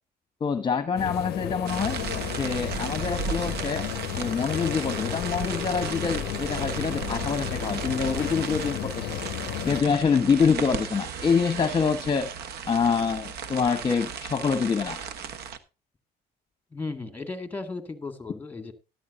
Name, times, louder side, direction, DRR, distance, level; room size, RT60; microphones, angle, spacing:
voice 1, 0.4-2.0 2.3-9.2 9.6-12.3 12.7-15.0, left 5 dB, 30° left, 9 dB, 1.0 m, -26 dB
sound 1, 1.0-9.8, left 17 dB, 70° left, 0.5 m, -33 dB
sound 2, 1.7-15.6, right 6 dB, 70° right, 1.2 m, -35 dB
Wind instrument woodwind instrument, 3.9-8.2, left 3 dB, 30° right, 3.5 m, -46 dB
voice 2, 16.7-18.7, left 3 dB, 10° left, 8 dB, 2.1 m, -35 dB
13.5 x 12.0 x 2.7 m, 0.29 s
cardioid pair, 110°, 17 cm